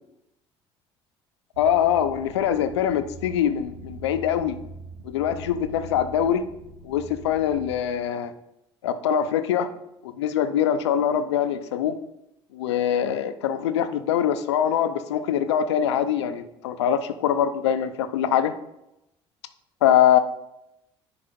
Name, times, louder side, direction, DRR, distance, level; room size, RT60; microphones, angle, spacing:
sound 1, 1.5-7.7, right 2 dB, 70° right, 1.6 m, -43 dB
voice 1, 1.6-4.6 5.0-6.4 6.8-8.3 8.8-9.7 10.0-11.9 12.5-18.5 19.8-20.2, left 9 dB, 80° left, 11 dB, 0.5 m, -23 dB
9.9 x 3.4 x 5.2 m, 0.86 s
hypercardioid pair, 55°, 14 cm